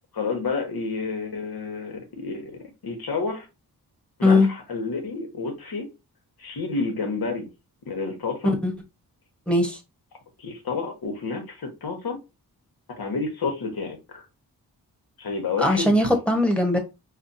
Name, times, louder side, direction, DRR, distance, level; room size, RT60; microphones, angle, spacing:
voice 1, 0.1-3.5 4.2-5.9 6.4-7.5 7.9-8.5 10.4-12.2 13.0-14.2 15.2-16.0, left 4 dB, 70° left, 1.4 m, -30 dB
voice 2, 9.5-9.8 15.6-16.8, left 2 dB, 5° left, 1.2 m, -20 dB
5.5 x 2.3 x 2.7 m
cardioid pair, 65°, 38 cm